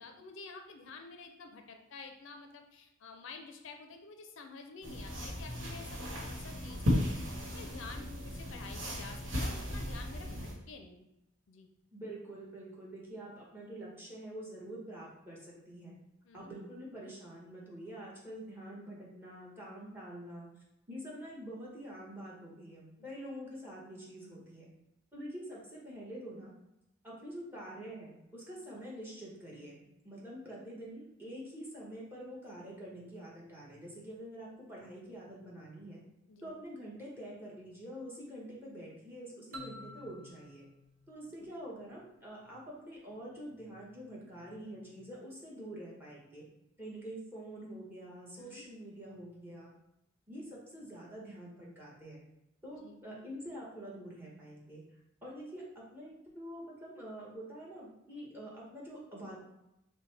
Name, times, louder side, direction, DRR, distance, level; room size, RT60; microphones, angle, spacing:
voice 1, 0.0-11.0 11.5-11.7 16.2-16.5 23.0-23.1 36.3-36.5 41.4-41.5 48.4-48.7 52.8-53.0, left 4 dB, 70° left, 5 dB, 0.5 m, -50 dB
sound 1, 4.8-10.5, left 1 dB, 70° right, 1.2 m, -36 dB
voice 2, 11.9-16.0 16.3-20.5 20.9-24.7 25.1-26.5 27.0-36.0 36.4-40.7 41.1-46.5 46.8-49.7 50.3-52.2 52.6-54.8 55.2-59.4, right 1 dB, 10° right, -5 dB, 1.2 m, -46 dB
sound 2, 39.5-42.2, equal, 85° right, 0.8 m, -51 dB
6.2 x 2.2 x 3.3 m, 0.87 s
head